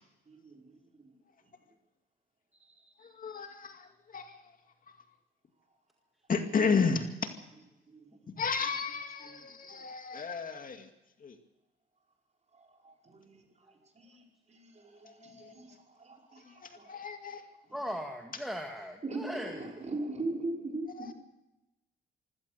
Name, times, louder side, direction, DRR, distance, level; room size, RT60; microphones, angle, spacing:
voice 1, 0.3-1.1 1.4-1.5 2.6-3.4 7.9-8.2 9.2-9.9 12.5-16.9 17.7-17.8 19.0-21.1, right 2 dB, 35° right, 1 dB, 5.5 m, -42 dB
voice 2, 3.0-4.5 6.3-7.3 8.4-10.9 11.2-11.4 15.0-15.5 16.4-17.5 21.0-21.1, left 5 dB, 45° left, 6 dB, 2.3 m, -33 dB
voice 3, 17.7-19.6, equal, ahead, 3 dB, 1.9 m, -38 dB
25.0 x 16.5 x 6.8 m, 0.97 s
cardioid pair, 90°, 20 cm